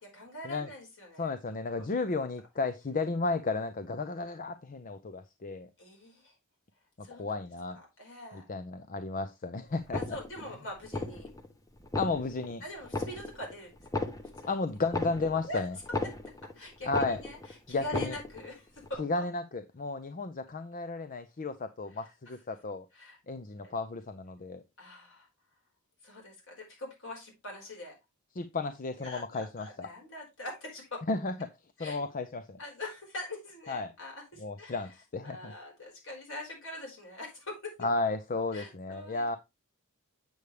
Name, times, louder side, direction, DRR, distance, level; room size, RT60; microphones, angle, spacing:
voice 1, 0.0-1.3 1.8-2.1 5.8-6.3 7.0-7.3 7.7-8.4 9.9-11.3 12.6-13.8 14.4-14.5 15.5-15.6 16.2-17.4 17.7-19.2 22.0-22.1 22.9-23.2 23.6-23.7 24.8-25.3 26.0-28.0 29.0-31.0 31.8-32.0 32.6-34.8 35.2-37.8 38.5-39.4, left 1 dB, 60° left, 4.7 m, -43 dB
voice 2, 1.2-5.7 7.0-7.8 8.3-10.0 12.0-12.6 14.4-15.7 16.9-17.2 17.7-18.2 19.0-22.9 23.3-24.6 28.4-29.9 31.1-31.5 31.8-32.6 33.7-33.9 34.4-35.5 37.8-39.4, left 3 dB, 40° left, 0.6 m, -33 dB
sound 1, 9.8-10.5 10.8-11.5 11.8-12.5 12.8-13.5 13.8-16.5 16.8-17.5 17.8-18.5 18.8-19.0, left 2 dB, 15° left, 0.9 m, -35 dB
7.9 x 6.9 x 3.3 m
head